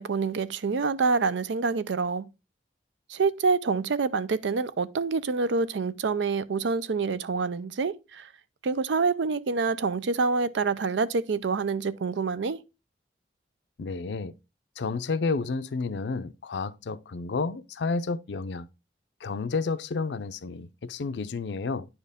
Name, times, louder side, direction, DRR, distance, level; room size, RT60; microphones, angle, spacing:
voice 1, 0.0-2.3 3.1-8.3 8.6-12.6, right 4 dB, 85° right, 0.5 m, -27 dB
voice 2, 13.8-14.3 14.8-18.7 19.2-21.9, left 4 dB, 70° left, 0.5 m, -31 dB
9.8 x 4.4 x 3.5 m
head